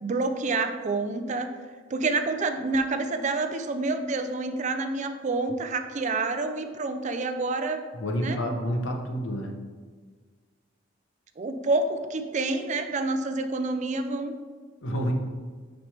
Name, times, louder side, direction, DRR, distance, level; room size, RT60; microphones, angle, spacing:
voice 1, 0.0-1.5 1.9-7.8 8.2-8.4 11.4-14.3, right 3 dB, 40° right, 8 dB, 0.4 m, -28 dB
voice 2, 7.9-9.5 14.8-15.1, equal, 75° left, 2 dB, 0.9 m, -29 dB
6.0 x 5.3 x 3.3 m, 1.5 s
head